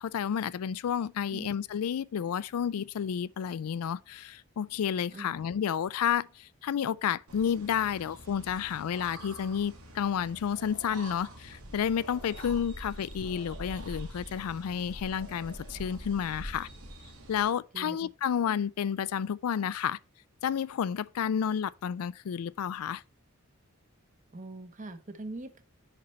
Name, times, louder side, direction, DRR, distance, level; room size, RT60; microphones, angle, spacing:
voice 1, 0.0-16.7 17.3-20.0 20.4-23.0, left 8 dB, 80° left, 0.4 m, -31 dB
sound 1, 7.3-17.4, right 1 dB, 80° right, 2.3 m, -45 dB
voice 2, 24.3-25.6, right 2 dB, 35° right, 0.9 m, -42 dB
6.7 x 5.4 x 4.3 m
head